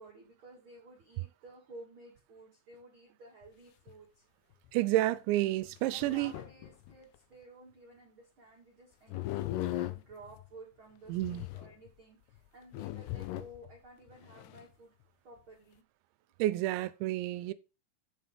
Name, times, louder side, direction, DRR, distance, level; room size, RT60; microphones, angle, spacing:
voice 1, 0.0-4.2 5.9-14.9 15.2-15.8, right 2 dB, 45° right, 1.8 m, -54 dB
sound 1, 3.5-3.6 3.9-4.0 4.7-4.8 5.7-7.2 9.1-10.5 11.1-11.9 12.4-12.5 12.7-13.8 14.1-14.6, left 15 dB, 85° left, 2.3 m, -39 dB
voice 2, 4.7-6.3 11.1-11.5 16.4-17.5, right 15 dB, 85° right, 2.8 m, -30 dB
7.6 x 7.1 x 4.9 m
omnidirectional pair, 5.3 m